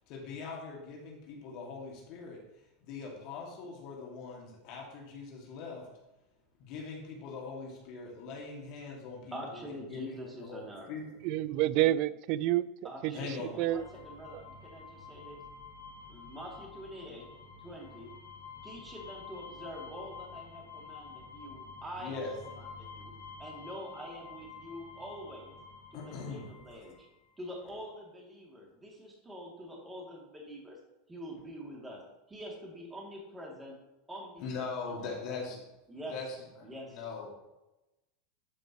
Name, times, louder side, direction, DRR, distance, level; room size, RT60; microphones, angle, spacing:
voice 1, 0.1-2.4 2.8-5.9 6.6-9.6 9.9-11.2 13.1-13.5 22.0-22.4 25.9-26.8 34.4-35.6 36.1-37.5, left 4 dB, 55° left, 2.2 m, -41 dB
voice 2, 9.3-10.9 12.8-15.4 16.1-17.3 17.6-18.1 18.6-23.1 23.4-25.5 25.9-27.1 27.4-30.8 31.1-32.0 32.3-33.8 34.1-35.6 35.9-36.1 36.6-37.0, equal, 15° right, 2.7 m, -45 dB
voice 3, 11.2-12.7 13.0-13.2 13.6-13.9 14.3-14.4, right 14 dB, 55° right, 0.3 m, -28 dB
sound 1, 13.7-27.1, left 5 dB, 85° left, 3.1 m, -49 dB
12.0 x 5.1 x 3.1 m
supercardioid pair, 115°, 0 cm